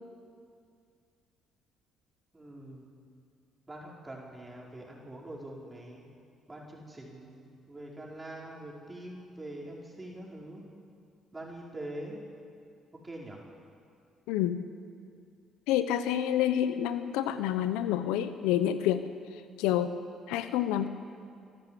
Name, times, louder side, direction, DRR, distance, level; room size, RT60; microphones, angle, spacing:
voice 1, 2.3-2.9 3.7-6.0 6.5-10.7 11.3-12.2 13.0-13.4, right 1 dB, 20° right, -2 dB, 5.0 m, -44 dB
voice 2, 14.3-14.6 15.7-19.0 19.6-19.9 20.3-20.9, left 11 dB, 85° left, 11 dB, 0.8 m, -28 dB
25.5 x 12.5 x 8.4 m, 2.3 s
supercardioid pair, 60°, 0 cm